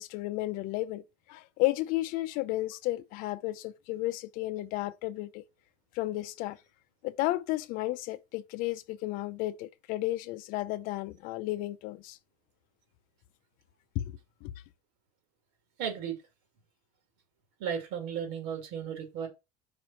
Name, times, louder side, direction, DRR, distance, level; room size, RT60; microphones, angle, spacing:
voice 1, 0.0-5.4 5.9-6.6 7.0-12.2 13.9-14.5, left 17 dB, 55° left, 0.6 m, -33 dB
voice 2, 15.8-16.2 17.6-19.3, right 8 dB, 70° right, 2.7 m, -34 dB
5.2 x 4.8 x 5.6 m
cardioid pair, 180°, 17 cm